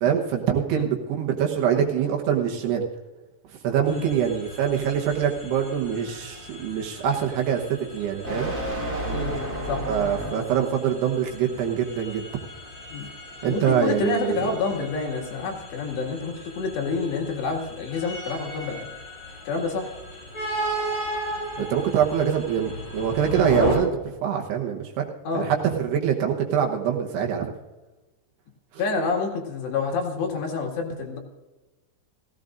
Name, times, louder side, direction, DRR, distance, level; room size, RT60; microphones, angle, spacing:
voice 1, 0.0-2.9 3.6-7.6 7.9-8.5 9.9-12.2 13.4-14.4 21.6-23.9 24.2-25.0 25.3-27.5, right 8 dB, 70° right, 2 dB, 3.0 m, -24 dB
sound 1, 3.8-10.7, right 1 dB, 40° right, 1.1 m, -33 dB
sound 2, 3.9-23.7, equal, 25° left, 6.2 m, -36 dB
voice 2, 13.4-18.9 19.5-19.9 25.2-25.5 28.8-31.2, left 4 dB, 70° left, 0 dB, 4.1 m, -28 dB
17.5 x 15.5 x 2.6 m, 1.1 s
omnidirectional pair, 5.4 m